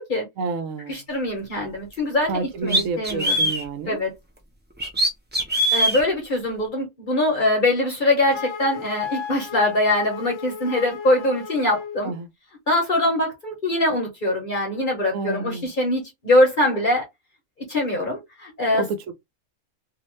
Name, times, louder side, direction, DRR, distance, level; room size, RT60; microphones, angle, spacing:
voice 1, 0.4-1.0 2.3-4.0 12.0-12.3 15.1-15.7 18.7-19.1, right 4 dB, 80° right, 1.0 m, -29 dB
voice 2, 0.9-3.5 3.9-4.1 5.7-12.1 12.7-17.1 17.7-18.8, left 1 dB, 40° left, 1.0 m, -23 dB
sound 1, 1.9-2.0 2.7-3.6 4.8-6.0, right 1 dB, 15° right, 0.3 m, -21 dB
Wind instrument woodwind instrument, 8.3-12.0, left 6 dB, 75° left, 1.0 m, -34 dB
2.7 x 2.4 x 3.0 m
omnidirectional pair, 1.4 m